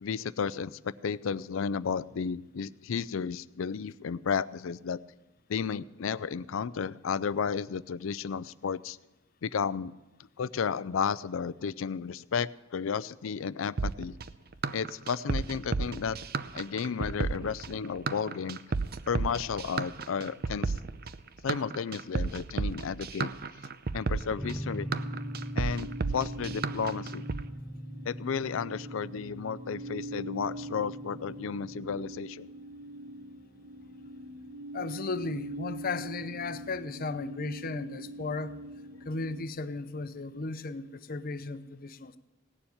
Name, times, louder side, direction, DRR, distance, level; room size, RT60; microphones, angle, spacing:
voice 1, 0.0-5.0 5.5-9.0 9.4-9.9 10.4-14.1 14.7-16.2 16.5-18.6 19.1-20.7 21.4-23.3 23.9-24.9 25.6-27.2 28.1-32.5, left 6 dB, 75° left, 18 dB, 0.4 m, -33 dB
sound 1, 13.8-27.4, right 4 dB, 50° right, 0.6 m, -32 dB
sound 2, 24.4-32.0, equal, ahead, 0.4 m, -41 dB
sound 3, 24.8-39.4, right 1 dB, 65° right, 1.1 m, -43 dB
voice 2, 34.7-38.6 39.0-42.2, left 3 dB, 45° left, 12 dB, 0.7 m, -35 dB
17.5 x 7.1 x 9.2 m, 1.1 s
head